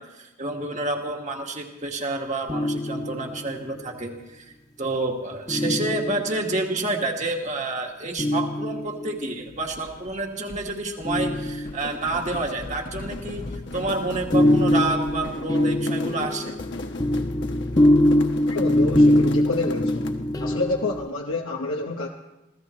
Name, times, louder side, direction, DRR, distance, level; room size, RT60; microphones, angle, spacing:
voice 1, 0.0-4.5 4.8-13.4 13.7-16.5, right 2 dB, 35° right, 1 dB, 1.8 m, -29 dB
sound 1, 2.5-3.6 5.5-6.5 8.2-9.3 11.0-12.1 13.7-21.1, left 1 dB, 20° left, 0.5 m, -23 dB
sound 2, 9.5-10.2 10.5-16.5, left 1 dB, 40° left, 1.1 m, -41 dB
sound 3, 11.7-20.3, left 3 dB, 60° left, 1.2 m, -37 dB
voice 2, 18.5-20.1 20.4-22.1, left 3 dB, 85° left, 0 dB, 1.1 m, -28 dB
27.0 x 16.0 x 3.2 m, 1.0 s
head